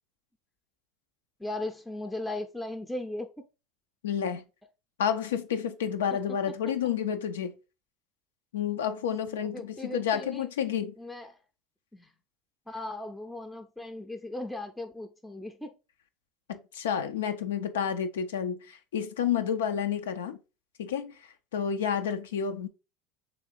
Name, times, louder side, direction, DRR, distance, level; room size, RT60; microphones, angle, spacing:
voice 1, 1.4-3.3 6.1-6.2 9.4-10.5 11.0-11.4 11.9-12.1 12.7-15.7, left 2 dB, 10° left, 0.5 m, -37 dB
voice 2, 4.0-4.4 5.0-7.5 8.5-10.9 16.5-20.4 20.8-21.1 21.5-22.7, left 8 dB, 85° left, 0.4 m, -30 dB
3.3 x 2.5 x 4.4 m
hypercardioid pair, 80°, 0 cm